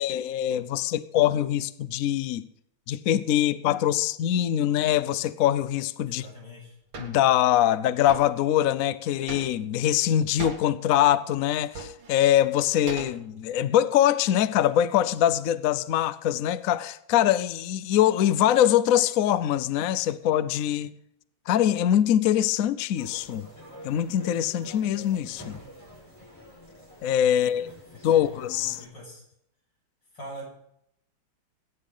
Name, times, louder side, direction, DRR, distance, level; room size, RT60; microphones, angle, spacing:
voice 1, 0.0-2.4 2.9-6.3 7.0-20.9 21.5-23.5 23.8-25.6 27.0-27.7 28.0-28.8, left 11 dB, 80° left, 0.7 m, -23 dB
voice 2, 6.0-6.8 27.3-27.8 28.0-29.2 30.1-30.5, equal, 60° left, 7.8 m, -44 dB
sound 1, 6.9-7.2 8.1-8.4 9.3-9.8 10.4-10.7 11.5-12.1 12.9-13.5, right 3 dB, 85° right, 3.0 m, -38 dB
sound 2, 23.0-28.9, left 1 dB, 5° left, 6.4 m, -47 dB
20.5 x 10.0 x 3.9 m
omnidirectional pair, 2.3 m